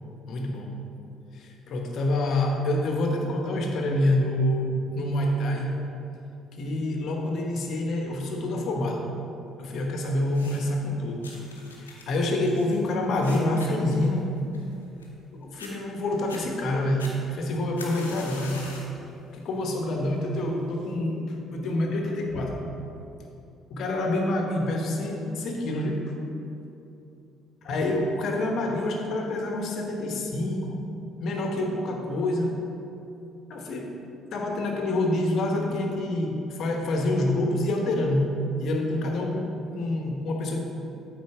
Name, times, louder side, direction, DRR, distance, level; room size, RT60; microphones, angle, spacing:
voice 1, 0.3-0.8 1.3-5.8 6.6-9.1 9.6-11.3 11.8-14.3 15.4-18.7 19.3-22.6 23.7-26.1 27.6-30.8 31.2-32.6 33.5-34.0 34.3-40.6, left 1 dB, 55° left, 2 dB, 1.0 m, -27 dB
sound 1, 10.2-10.8 11.2-15.3 15.6-15.7 16.2-16.4 17.0-19.0 19.4-19.8 20.6-20.7, left 3 dB, 85° left, 0.7 m, -44 dB
8.5 x 3.9 x 4.9 m, 2.8 s
figure-of-eight pair, 50°, 0 cm